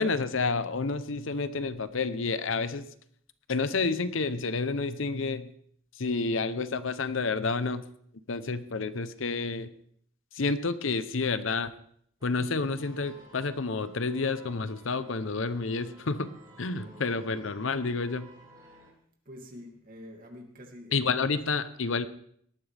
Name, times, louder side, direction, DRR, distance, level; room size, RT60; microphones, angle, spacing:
voice 1, 0.0-2.9 3.5-5.5 6.0-7.8 8.3-9.7 10.3-11.7 12.2-16.3 16.6-18.3 20.9-22.1, left 4 dB, 70° left, 13 dB, 0.8 m, -29 dB
sound 1, 12.2-18.9, right 1 dB, 20° right, 6.4 m, -54 dB
voice 2, 16.7-17.5 19.2-21.4, equal, 45° right, 1 dB, 2.6 m, -48 dB
18.5 x 13.0 x 3.5 m, 0.64 s
head